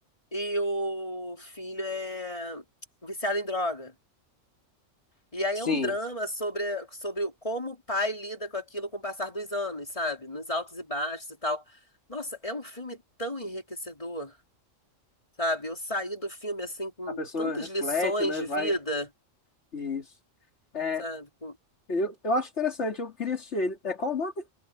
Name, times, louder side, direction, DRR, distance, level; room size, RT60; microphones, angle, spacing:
voice 1, 0.3-2.6 3.0-3.9 5.3-11.6 12.1-14.3 15.4-19.1 21.0-21.5, equal, 25° left, 3.5 m, -32 dB
voice 2, 17.2-18.7 19.7-20.0 20.7-21.0 21.9-24.3, left 3 dB, 60° left, 2.8 m, -29 dB
omnidirectional pair, 1.3 m